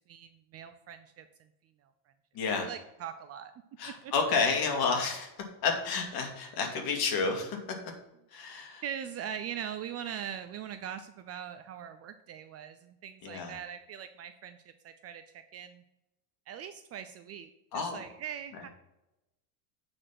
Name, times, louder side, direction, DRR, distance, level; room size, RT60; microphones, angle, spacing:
voice 1, 0.1-1.5 1.8-1.9 2.6-3.5 4.0-4.1 8.8-15.8 16.5-18.7, right 9 dB, 35° right, 9 dB, 0.4 m, -41 dB
voice 2, 2.3-2.7 3.8-5.3 5.6-7.6 8.3-8.8 13.2-13.6 17.7-18.0, left 4 dB, 50° left, 3 dB, 2.3 m, -30 dB
9.1 x 4.4 x 5.8 m, 0.94 s
supercardioid pair, 130°, 48 cm